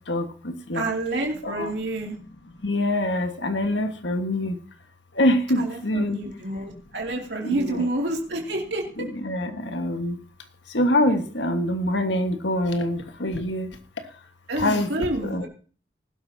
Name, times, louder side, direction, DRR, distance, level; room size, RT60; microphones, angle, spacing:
voice 1, 0.7-2.2 5.6-9.1 14.5-15.5, right 1 dB, 80° right, 0 dB, 2.7 m, -28 dB
voice 2, 2.6-4.5 5.2-6.2 7.4-7.9 9.0-10.1 10.7-13.7 14.6-14.9 15.2-15.5, left 1 dB, 90° left, 7 dB, 1.6 m, -24 dB
19.5 x 12.0 x 2.8 m, 0.41 s
head